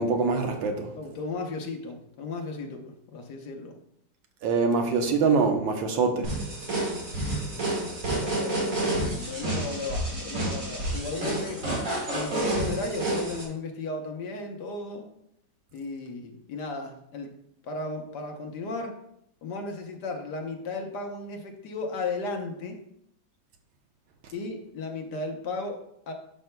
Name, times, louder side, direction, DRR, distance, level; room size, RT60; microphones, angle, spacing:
voice 1, 0.0-0.9 4.4-6.3, right 4 dB, 85° right, 1.6 m, -24 dB
voice 2, 1.0-3.8 8.2-11.6 12.1-15.1 15.7-17.4 17.6-19.0 19.4-22.8 24.3-26.1, left 3 dB, 65° left, 1.4 m, -35 dB
sound 1, 6.2-13.4, right 1 dB, 45° right, 2.2 m, -29 dB
10.5 x 5.5 x 2.2 m
omnidirectional pair, 2.0 m